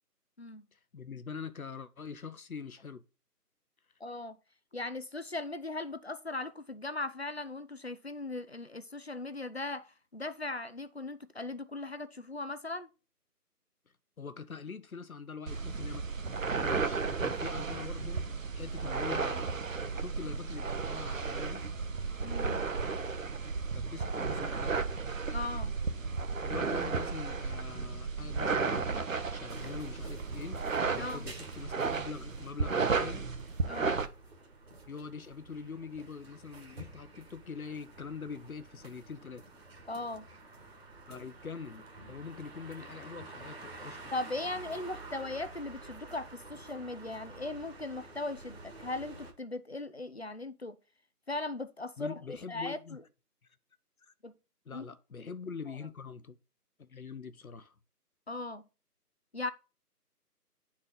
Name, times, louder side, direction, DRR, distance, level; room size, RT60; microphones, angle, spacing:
voice 1, 0.7-3.0 14.2-16.1 16.5-18.2 18.5-19.5 20.0-21.6 23.7-24.9 26.4-28.9 29.3-30.6 30.9-33.3 34.9-39.4 41.1-44.1 52.0-53.0 54.0-54.1 54.7-56.4 56.8-57.7, left 5 dB, 60° left, 0.8 m, -44 dB
voice 2, 4.0-4.4 4.7-12.9 22.2-22.6 25.3-25.8 30.9-31.3 33.7-34.0 39.9-40.3 44.1-50.8 51.3-53.0 54.2-54.3 54.7-54.9 55.7-55.8 58.3-58.7 59.3-59.5, left 2 dB, 45° left, 0.5 m, -38 dB
sound 1, 15.5-34.1, right 4 dB, 55° right, 0.8 m, -33 dB
sound 2, 29.5-49.3, right 2 dB, 40° right, 1.4 m, -50 dB
9.4 x 4.2 x 3.8 m
figure-of-eight pair, 155°, 48 cm